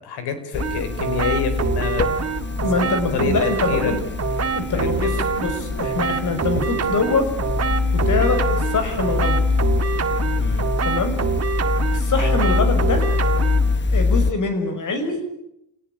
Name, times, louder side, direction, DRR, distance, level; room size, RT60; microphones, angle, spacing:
voice 1, 0.0-2.1 2.7-3.4 3.7-3.9 4.7-5.2 10.4-10.6, left 7 dB, 75° left, 10 dB, 5.3 m, -27 dB
sound 1, 0.5-14.3, left 4 dB, 25° left, 1.3 m, -24 dB
sound 2, 0.6-13.8, right 6 dB, 40° right, 1.9 m, -26 dB
voice 2, 2.6-4.0 4.5-7.3 7.9-9.4 10.8-11.2 11.9-13.1 13.9-15.2, left 4 dB, 45° left, 8 dB, 6.3 m, -24 dB
29.0 x 18.0 x 8.8 m, 0.82 s
supercardioid pair, 80°, 41 cm